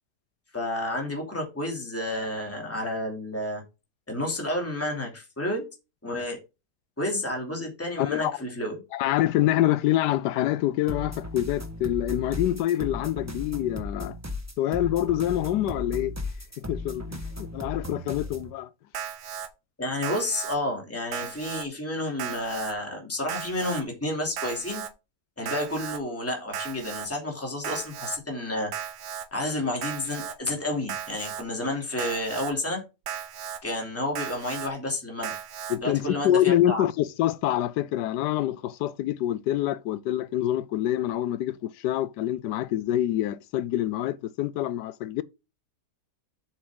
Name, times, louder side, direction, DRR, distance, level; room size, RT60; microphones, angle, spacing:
voice 1, 0.5-3.6 4.1-5.7 6.0-6.4 7.0-8.8 19.8-24.8 25.4-28.7 29.3-32.8 33.6-35.3 35.8-36.9, left 1 dB, 10° left, 2.8 m, -30 dB
voice 2, 8.0-8.3 8.9-14.1 14.6-16.1 16.6-18.7 35.7-45.2, left 13 dB, 85° left, 1.2 m, -26 dB
sound 1, 10.9-18.5, left 2 dB, 10° right, 1.2 m, -36 dB
Alarm, 18.9-19.5 20.0-20.6 21.1-21.7 22.2-22.7 23.3-23.8 24.4-24.9 25.5-26.0 26.5-27.1 27.6-28.2 28.7-29.3 29.8-30.4 30.9-31.4 32.0-32.5 33.1-33.6 34.2-34.7 35.2-35.8, right 9 dB, 85° right, 1.6 m, -35 dB
7.3 x 7.3 x 3.8 m
omnidirectional pair, 1.7 m